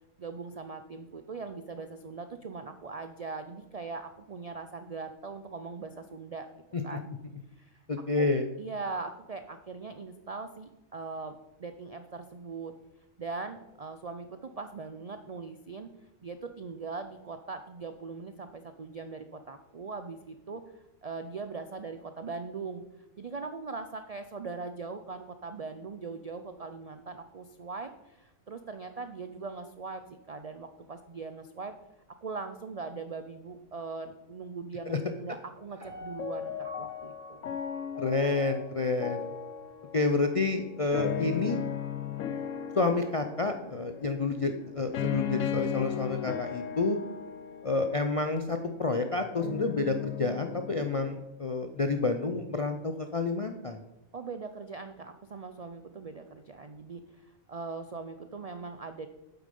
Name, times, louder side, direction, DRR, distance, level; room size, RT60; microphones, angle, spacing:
voice 1, 0.2-6.5 6.8-7.1 7.6-7.9 8.2-8.3 8.6-12.7 13.2-15.9 16.2-20.6 21.0-22.8 23.2-31.7 32.2-37.5 54.1-59.1, right 4 dB, 70° right, 8 dB, 0.3 m, -40 dB
voice 2, 7.9-8.4 34.9-35.0 38.0-39.3 39.9-41.6 42.8-47.0 47.6-53.8, left 3 dB, 55° left, 6 dB, 0.3 m, -29 dB
Piano, 35.8-38.9 39.3-39.4, left 1 dB, 50° right, 3.1 m, -47 dB
sound 1, 36.2-51.2, left 9 dB, 75° left, 1.1 m, -37 dB
8.5 x 7.9 x 5.3 m, 0.98 s
omnidirectional pair, 1.4 m